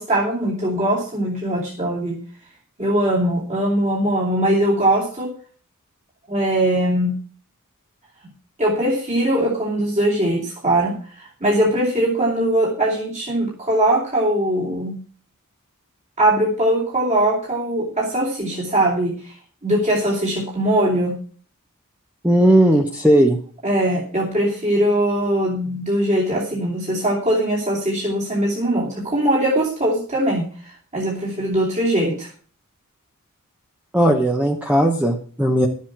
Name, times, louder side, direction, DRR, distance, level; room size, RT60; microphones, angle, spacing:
voice 1, 0.0-2.2 2.8-5.3 6.3-7.1 8.6-14.9 16.2-19.3 19.6-21.1 23.6-32.3, right 1 dB, 30° right, -4 dB, 2.7 m, -21 dB
voice 2, 22.2-23.4 33.9-35.7, right 1 dB, 5° right, 2 dB, 1.1 m, -16 dB
12.0 x 7.5 x 6.0 m, 0.42 s
head